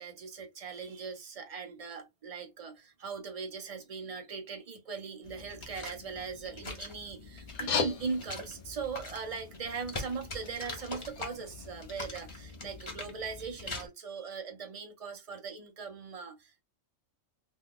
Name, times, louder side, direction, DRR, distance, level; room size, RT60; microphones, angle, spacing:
voice 1, 0.0-16.6, right 5 dB, 40° right, 0.5 m, -40 dB
sound 1, 5.2-13.9, left 2 dB, 25° left, 0.8 m, -43 dB
sound 2, 7.5-12.4, left 6 dB, 80° left, 1.1 m, -39 dB
3.1 x 2.2 x 3.8 m
omnidirectional pair, 1.5 m